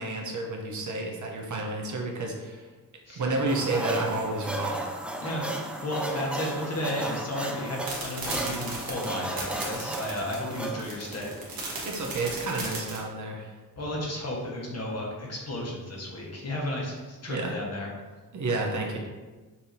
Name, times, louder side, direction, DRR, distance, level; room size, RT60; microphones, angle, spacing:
voice 1, 0.0-2.6 3.2-4.9 10.8-10.9 11.8-13.5 17.3-17.5 18.3-19.0, right 2 dB, 55° right, 1 dB, 0.8 m, -30 dB
sound 1, 3.5-12.6, right 1 dB, 5° right, 0.5 m, -35 dB
voice 2, 5.8-11.3 13.8-17.9, left 1 dB, 45° left, -2 dB, 1.2 m, -33 dB
sound 2, 7.8-13.0, right 3 dB, 75° right, 1.2 m, -36 dB
5.6 x 2.7 x 2.7 m, 1.3 s
cardioid pair, 65°, 35 cm